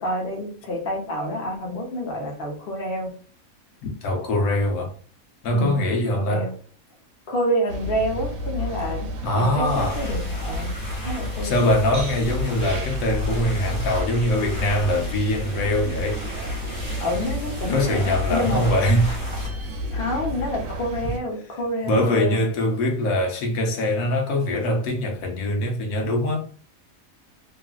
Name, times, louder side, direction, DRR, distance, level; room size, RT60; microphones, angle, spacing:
voice 1, 0.0-3.1 5.5-5.8 6.2-6.5 7.3-9.1 9.4-10.7 11.0-11.7 17.0-18.6 19.9-22.4, equal, 45° left, 1.0 m, -28 dB
voice 2, 3.8-4.9 5.4-6.5 9.2-10.0 11.4-16.2 17.7-19.2 21.8-26.4, left 1 dB, 80° left, 1.1 m, -23 dB
sound 1, 7.7-21.2, equal, 75° right, 1.0 m, -30 dB
sound 2, 9.6-19.5, equal, 15° left, 0.8 m, -36 dB
2.9 x 2.5 x 2.3 m
omnidirectional pair, 1.5 m